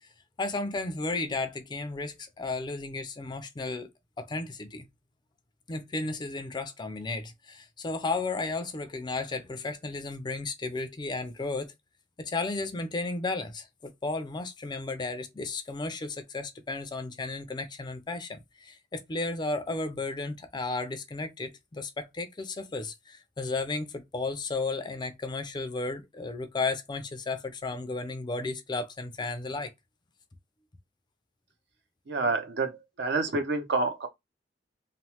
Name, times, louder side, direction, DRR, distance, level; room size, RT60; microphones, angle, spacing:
voice 1, 0.4-3.9 4.2-4.9 5.7-11.7 12.2-29.7, left 3 dB, 25° left, 0.4 m, -34 dB
voice 2, 32.1-34.1, right 3 dB, 65° right, 0.6 m, -28 dB
3.1 x 2.0 x 2.8 m
head